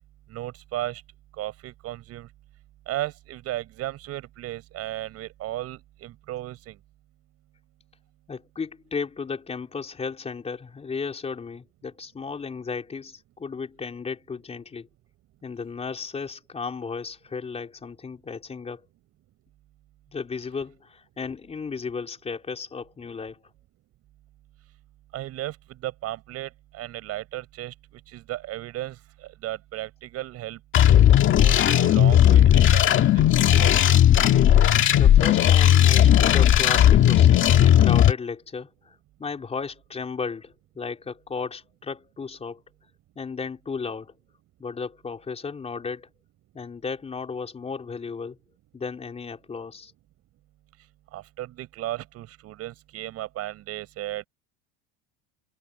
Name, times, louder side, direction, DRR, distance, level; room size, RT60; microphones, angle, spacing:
voice 1, 0.3-1.0 1.4-2.3 2.9-6.8 25.1-27.7 28.1-29.0 29.4-30.6 31.4-33.8 51.1-54.3, right 14 dB, 45° right, 6.8 m, -35 dB
voice 2, 8.3-14.9 15.4-18.9 20.1-23.5 34.9-42.6 43.2-44.1 44.6-46.1 46.5-48.4 48.7-49.9, left 5 dB, 20° left, 4.2 m, -34 dB
sound 1, 30.7-38.1, left 11 dB, 35° left, 2.0 m, -16 dB
cardioid pair, 150°, 34 cm